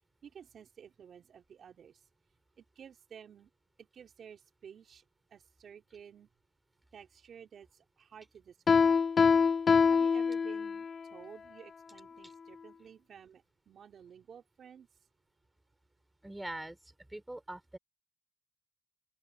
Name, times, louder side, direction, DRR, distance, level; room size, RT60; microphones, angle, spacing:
voice 1, 0.2-2.0 2.6-3.5 3.8-5.0 5.3-6.3 6.9-9.0 9.9-14.9, right 8 dB, 55° right, 4.1 m, -53 dB
Piano, 8.7-11.0, left 5 dB, 40° left, 1.1 m, -25 dB
voice 2, 16.2-16.8 17.1-17.8, right 1 dB, 10° right, 6.6 m, -42 dB
open air
cardioid pair, 95°, 0 cm